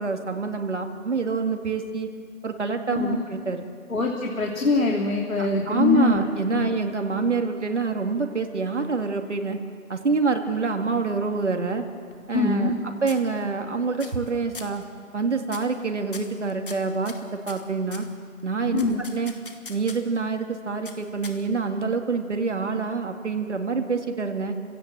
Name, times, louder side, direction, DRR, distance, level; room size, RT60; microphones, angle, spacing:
voice 1, 0.0-2.1 2.4-3.7 5.7-9.6 9.9-11.8 12.3-12.7 13.0-14.8 15.1-17.1 17.5-18.1 18.4-19.3 19.7-24.6, right 4 dB, 50° right, 5 dB, 2.4 m, -26 dB
voice 2, 3.9-6.2 6.5-6.6 12.3-12.8 18.7-19.1, left 3 dB, 65° left, 0 dB, 3.0 m, -23 dB
sound 1, 11.9-12.8 13.1-13.7 14.0-14.3 14.5-14.8 15.5-15.8 16.1-18.1 18.8-20.2 20.9-21.7, left 4 dB, 35° left, 1.8 m, -42 dB
30.0 x 17.0 x 7.6 m, 2.4 s
figure-of-eight pair, 170°, 44 cm